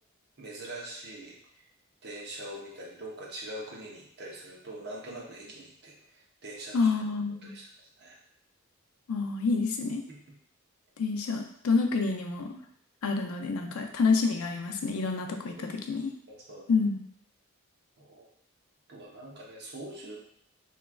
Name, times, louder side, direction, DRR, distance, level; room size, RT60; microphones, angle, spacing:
voice 1, 0.4-1.6 2.0-6.9 7.4-8.2 10.1-10.2 13.7-13.9 15.5-15.9 16.3-16.6 18.0-18.3 18.9-20.2, right 1 dB, 50° right, -3 dB, 0.8 m, -43 dB
voice 2, 6.7-7.6 9.1-10.0 11.0-12.6 13.0-16.1 16.7-17.0, left 4 dB, 75° left, 4 dB, 0.5 m, -28 dB
3.6 x 3.1 x 2.3 m, 0.66 s
head